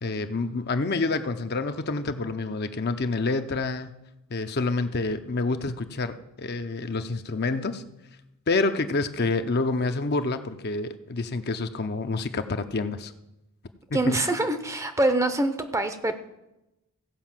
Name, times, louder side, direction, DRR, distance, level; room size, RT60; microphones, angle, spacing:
voice 1, 0.0-4.0 4.3-7.8 8.5-13.1 13.9-14.2, left 3 dB, 45° left, 8 dB, 0.6 m, -28 dB
voice 2, 13.9-16.1, right 2 dB, 15° right, 9 dB, 0.7 m, -25 dB
16.0 x 5.3 x 7.4 m, 0.92 s
head